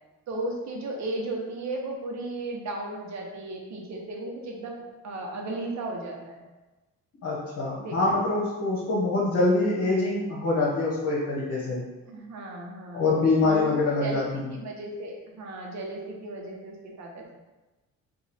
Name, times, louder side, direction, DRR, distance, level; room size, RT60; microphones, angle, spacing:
voice 1, 0.3-6.4 7.8-8.2 12.1-17.3, right 2 dB, 65° right, 0 dB, 0.9 m, -35 dB
voice 2, 7.2-11.8 12.9-14.2, left 2 dB, 55° left, -5 dB, 1.1 m, -24 dB
3.0 x 2.5 x 4.1 m, 1.1 s
cardioid pair, 90°, 30 cm